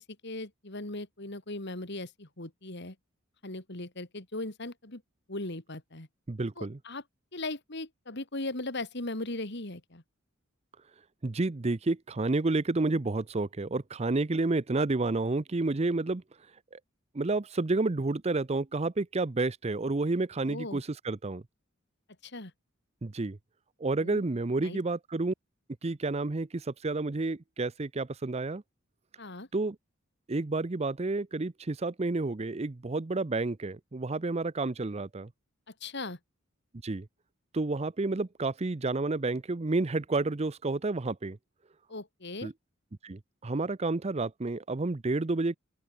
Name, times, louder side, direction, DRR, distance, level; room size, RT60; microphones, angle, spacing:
voice 1, 0.0-2.9 3.4-5.0 5.3-6.1 6.6-7.0 7.3-10.0 20.4-20.8 22.2-22.5 24.0-24.2 24.6-24.8 29.2-29.5 35.8-36.2 41.9-42.5, left 2 dB, 55° left, 3.0 m, -38 dB
voice 2, 6.3-6.8 11.2-16.2 16.7-16.8 17.1-21.4 23.0-23.4 23.8-25.3 25.8-28.6 29.5-29.8 30.3-35.3 36.8-37.1 37.5-41.4 42.4-42.5 43.0-45.6, right 3 dB, 30° right, 0.6 m, -30 dB
open air
head